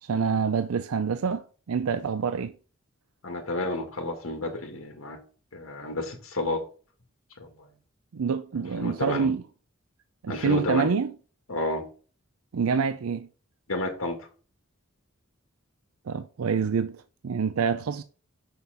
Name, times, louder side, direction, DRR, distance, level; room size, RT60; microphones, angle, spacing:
voice 1, 0.0-2.5 8.1-9.4 10.2-11.1 12.5-13.3 16.1-18.0, right 6 dB, 90° right, 0.5 m, -27 dB
voice 2, 3.2-5.2 5.5-6.6 7.4-7.5 8.8-9.3 10.3-10.9 11.5-11.9 13.7-14.3, left 2 dB, 75° left, 1.9 m, -31 dB
5.8 x 5.7 x 5.7 m
head